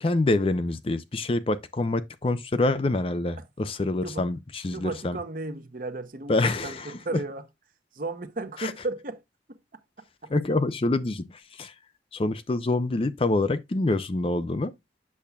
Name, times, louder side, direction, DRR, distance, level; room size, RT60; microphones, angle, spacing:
voice 1, 0.0-5.2 6.3-6.9 8.6-8.7 10.3-11.7 12.1-14.7, left 2 dB, 30° left, 0.4 m, -26 dB
voice 2, 4.7-7.4 7.9-9.2 9.5-9.8 10.2-10.3, right 2 dB, 50° right, 0.9 m, -35 dB
8.5 x 6.9 x 2.3 m
head